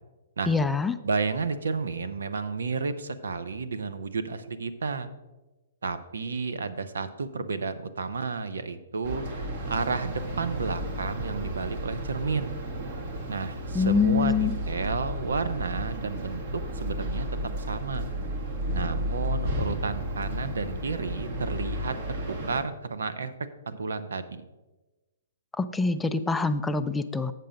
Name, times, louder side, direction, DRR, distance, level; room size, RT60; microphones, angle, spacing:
voice 1, 0.5-0.9 13.7-14.5 25.6-27.3, left 4 dB, 5° left, 10 dB, 0.3 m, -25 dB
voice 2, 1.0-5.1 5.8-9.2 9.7-12.6 13.3-17.3 17.6-18.1 18.7-21.9 22.3-23.3 23.7-24.4, right 4 dB, 85° right, 12 dB, 0.7 m, -31 dB
sound 1, 9.0-22.6, equal, 50° right, 1.7 m, -33 dB
7.6 x 6.7 x 5.1 m, 1.1 s
hypercardioid pair, 145°, 0 cm